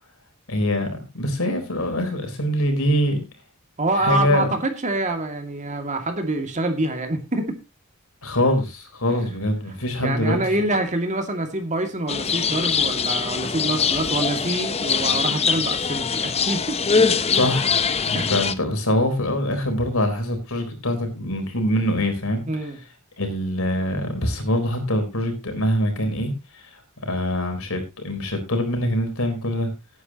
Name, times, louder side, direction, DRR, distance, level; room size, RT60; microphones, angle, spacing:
voice 1, 0.5-3.2 4.0-4.6 8.2-10.7 17.3-17.7 18.1-22.4 23.2-26.6 27.1-29.7, left 1 dB, 70° left, 6 dB, 4.2 m, -24 dB
voice 2, 3.8-7.6 9.2-9.4 10.0-17.1 18.1-18.4 22.5-22.8, right 2 dB, 35° right, 5 dB, 2.3 m, -26 dB
sound 1, 12.1-18.5, left 6 dB, 30° left, 0.8 m, -23 dB
18.0 x 9.6 x 2.9 m, 0.26 s
head